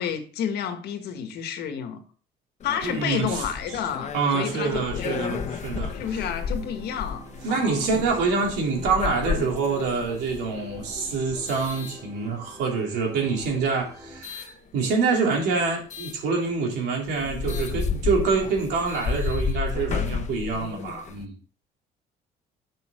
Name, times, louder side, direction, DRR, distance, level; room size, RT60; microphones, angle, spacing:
voice 1, 0.0-2.0 2.6-5.2 5.9-7.9, left 8 dB, 70° left, 1.5 m, -30 dB
sound 1, 2.6-12.6 13.3-14.5 15.9-16.2 16.7-16.8 17.1-21.3, left 6 dB, 45° left, 1.0 m, -32 dB
voice 2, 2.8-3.4 4.1-5.9 7.4-21.4, right 4 dB, 85° right, 3.0 m, -26 dB
sound 2, 3.5-14.2, right 1 dB, 20° right, 2.7 m, -46 dB
7.6 x 6.4 x 3.7 m
cardioid pair, 110°, 17 cm